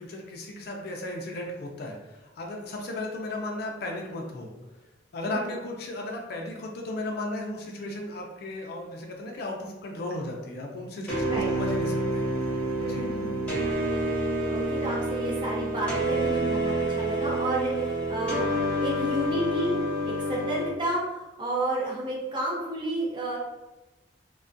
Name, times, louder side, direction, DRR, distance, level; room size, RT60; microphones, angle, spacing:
voice 1, 0.0-4.5 5.1-12.3 12.8-13.1, left 1 dB, 55° left, 1 dB, 0.4 m, -35 dB
sound 1, 11.1-20.7, right 1 dB, 5° left, 0.8 m, -28 dB
voice 2, 12.8-13.4 14.5-18.5 18.8-19.7 20.0-23.4, right 1 dB, 25° right, -6 dB, 0.7 m, -31 dB
2.3 x 2.1 x 2.5 m, 1.1 s
head